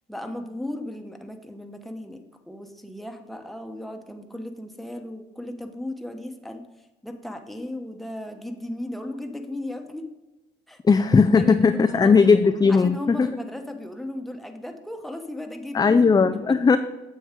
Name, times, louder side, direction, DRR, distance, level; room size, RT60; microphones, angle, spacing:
voice 1, 0.1-2.2 2.5-6.6 7.0-10.1 10.7-10.8 11.1-12.2 12.7-16.0 16.5-16.6, left 1 dB, ahead, 4 dB, 1.1 m, -36 dB
voice 2, 10.9-13.3 15.7-16.8, left 5 dB, 20° left, 8 dB, 0.4 m, -17 dB
9.3 x 7.0 x 3.7 m, 1.1 s
cardioid pair, 90°, 20 cm